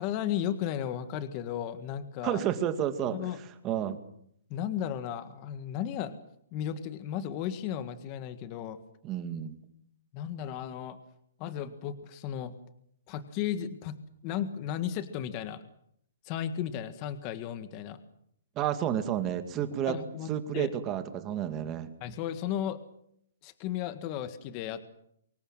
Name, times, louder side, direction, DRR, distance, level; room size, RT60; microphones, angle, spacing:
voice 1, 0.0-2.4 3.1-3.4 4.5-6.2 6.5-8.8 10.1-11.0 11.4-12.5 13.1-14.0 14.2-15.6 16.3-18.0 19.9-20.7 22.0-22.8 23.4-24.8, left 10 dB, 30° left, 11 dB, 1.7 m, -34 dB
voice 2, 2.2-3.2 3.6-4.0 9.0-9.5 18.6-20.0 20.3-21.9, right 10 dB, 20° right, 9 dB, 2.2 m, -30 dB
25.0 x 21.5 x 7.4 m, 0.70 s
hypercardioid pair, 165°, 0 cm